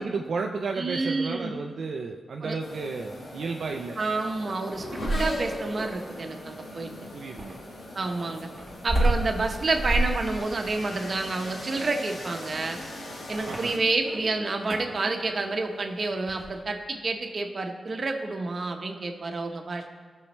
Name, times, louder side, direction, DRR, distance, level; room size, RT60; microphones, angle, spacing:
voice 1, 0.0-4.0 7.1-7.6 13.5-13.7, right 4 dB, 70° right, 2 dB, 0.5 m, -33 dB
voice 2, 0.8-1.5 2.4-2.6 4.0-6.9 7.9-8.5 8.8-12.8 13.3-19.9, right 3 dB, 45° right, 4 dB, 1.0 m, -29 dB
sound 1, 2.6-13.8, left 1 dB, 85° left, 1.8 m, -42 dB
Race car auto racing / Accelerating revving vroom, 3.3-9.0 9.8-10.2 10.6-16.5, left 1 dB, 70° left, 2.6 m, -42 dB
sound 2, 4.7-5.6 7.4-14.2 14.6-15.0 16.3-16.6, right 1 dB, 20° right, 1.4 m, -30 dB
16.5 x 6.4 x 3.3 m, 1.5 s
wide cardioid pair, 110°, 0 cm